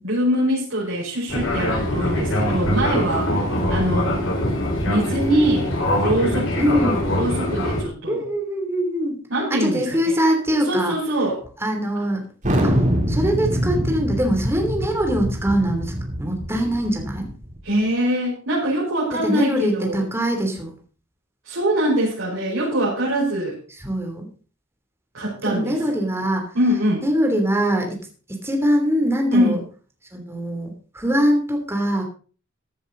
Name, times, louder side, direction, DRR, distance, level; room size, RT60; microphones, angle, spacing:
voice 1, 0.0-3.4 3.7-4.3 4.9-5.7 6.0-6.8 7.2-8.2 9.3-10.1 10.7-11.4 17.6-20.0 21.5-23.6 25.1-25.8 26.5-27.0 29.3-29.6, right 1 dB, 85° right, -7 dB, 5.2 m, -23 dB
Fixed-wing aircraft airplane, 1.3-7.8, left 1 dB, 70° left, 4.7 m, -23 dB
voice 2, 6.6-7.1 8.1-9.2 9.5-10.9 11.6-12.2 12.6-17.3 19.1-20.8 23.8-24.3 25.4-26.5 27.0-28.0 28.3-29.6 30.1-32.0, equal, 15° right, 2 dB, 3.1 m, -23 dB
Thunder, 12.4-17.6, equal, 40° right, 3.5 m, -24 dB
15.0 x 10.0 x 3.9 m, 0.39 s
head